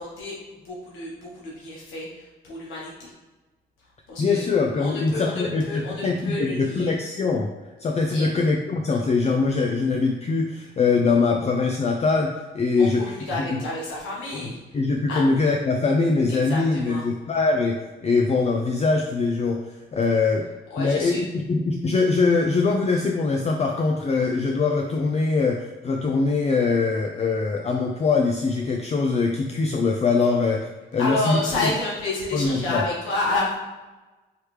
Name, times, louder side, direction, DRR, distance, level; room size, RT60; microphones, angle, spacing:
voice 1, 0.0-3.1 4.1-6.9 8.1-8.3 12.8-14.8 15.1-15.2 16.3-17.1 20.7-21.2 31.0-33.6, left 2 dB, 90° left, -5 dB, 1.3 m, -30 dB
voice 2, 4.2-7.5 7.8-13.5 14.7-20.5 20.8-31.7 32.3-32.8, left 4 dB, 35° left, 2 dB, 0.4 m, -23 dB
4.8 x 3.2 x 3.2 m, 1.2 s
cardioid pair, 90°, 20 cm